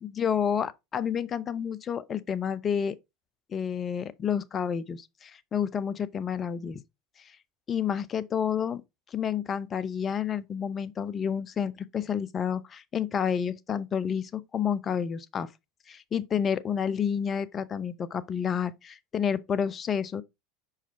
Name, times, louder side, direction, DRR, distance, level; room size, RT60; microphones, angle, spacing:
voice 1, 0.0-3.0 3.5-6.8 7.7-8.8 9.1-15.5 15.9-20.2, left 7 dB, 30° left, 0.7 m, -30 dB
5.5 x 4.9 x 4.0 m
figure-of-eight pair, 80°, 0 cm